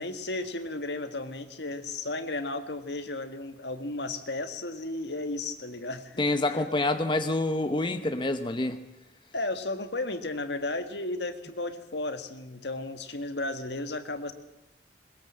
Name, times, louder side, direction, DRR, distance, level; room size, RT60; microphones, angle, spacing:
voice 1, 0.0-6.2 6.5-6.7 9.3-14.3, left 2 dB, 70° left, 8 dB, 1.8 m, -34 dB
voice 2, 6.2-8.8, left 2 dB, 25° left, 8 dB, 1.0 m, -27 dB
21.0 x 21.0 x 7.6 m, 0.90 s
head